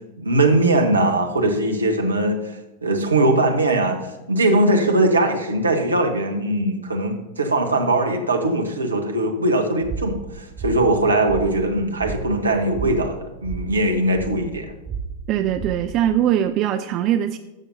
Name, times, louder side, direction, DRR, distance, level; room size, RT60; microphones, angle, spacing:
voice 1, 0.2-14.7, right 1 dB, 75° right, 4 dB, 1.1 m, -20 dB
sound 1, 9.8-16.2, right 5 dB, 15° right, 2.7 m, -34 dB
voice 2, 15.3-17.4, right 11 dB, 35° right, 10 dB, 0.4 m, -21 dB
13.0 x 7.0 x 2.7 m, 1.1 s
figure-of-eight pair, 90°, 0 cm